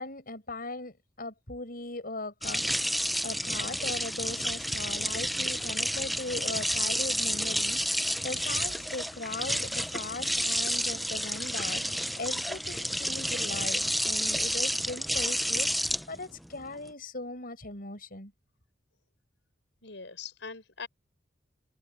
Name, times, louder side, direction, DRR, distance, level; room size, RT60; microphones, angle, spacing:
voice 1, 0.0-2.6 3.2-18.3, left 2 dB, 50° left, 7.1 m, -39 dB
sound 1, 2.4-16.9, equal, ahead, 0.7 m, -30 dB
voice 2, 19.8-20.9, left 5 dB, 80° left, 5.7 m, -42 dB
head